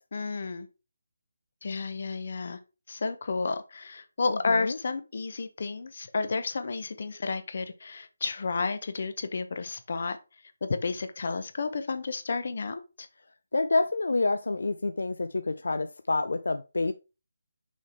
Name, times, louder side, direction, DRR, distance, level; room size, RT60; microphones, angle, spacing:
voice 1, 0.1-0.7 1.6-2.6 2.9-10.2 10.6-13.1, left 4 dB, 55° left, 9 dB, 1.0 m, -31 dB
voice 2, 4.3-4.8 13.5-16.9, left 3 dB, 80° left, 10 dB, 0.5 m, -28 dB
6.2 x 3.7 x 4.5 m, 0.29 s
figure-of-eight pair, 165°, 0 cm